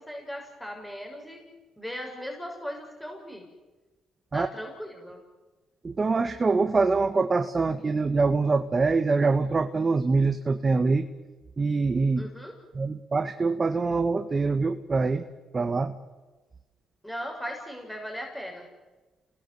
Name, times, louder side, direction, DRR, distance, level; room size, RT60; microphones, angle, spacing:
voice 1, 0.0-1.4 1.8-3.5 4.3-5.2 12.2-12.5 17.0-18.7, equal, 5° left, 2 dB, 6.5 m, -38 dB
voice 2, 5.8-11.1 11.6-12.3 12.7-15.2 15.5-16.0, right 4 dB, 35° right, 8 dB, 1.6 m, -24 dB
29.5 x 20.0 x 7.9 m, 1.2 s
supercardioid pair, 70°, 0 cm